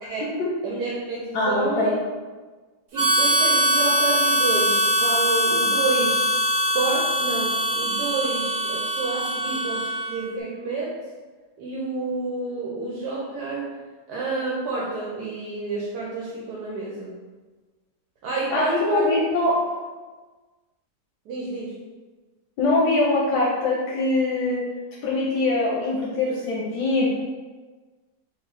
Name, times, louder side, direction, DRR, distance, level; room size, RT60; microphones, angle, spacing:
voice 1, 0.6-1.9 2.9-6.3 6.7-11.0 11.6-13.7 14.1-17.1 18.2-19.1 21.3-21.8, right 3 dB, 75° right, -4 dB, 1.2 m, -29 dB
voice 2, 1.3-1.9 18.5-19.6 22.6-24.6 25.0-27.1, left 2 dB, 85° left, -5 dB, 1.3 m, -22 dB
Harmonica, 3.0-10.2, equal, 55° right, 1.1 m, -22 dB
3.4 x 3.0 x 4.0 m, 1.3 s
omnidirectional pair, 1.7 m